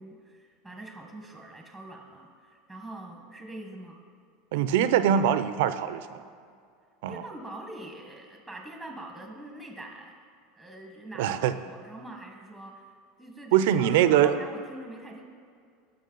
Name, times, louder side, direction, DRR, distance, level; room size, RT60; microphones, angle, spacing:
voice 1, 0.0-4.0 7.1-10.2 10.6-12.9 13.2-15.2, right 1 dB, ahead, 2 dB, 1.3 m, -44 dB
voice 2, 4.5-6.2 7.0-7.2 11.2-11.5 13.5-14.3, right 10 dB, 75° right, 12 dB, 0.5 m, -23 dB
15.5 x 6.0 x 3.9 m, 2.2 s
supercardioid pair, 125°, 0 cm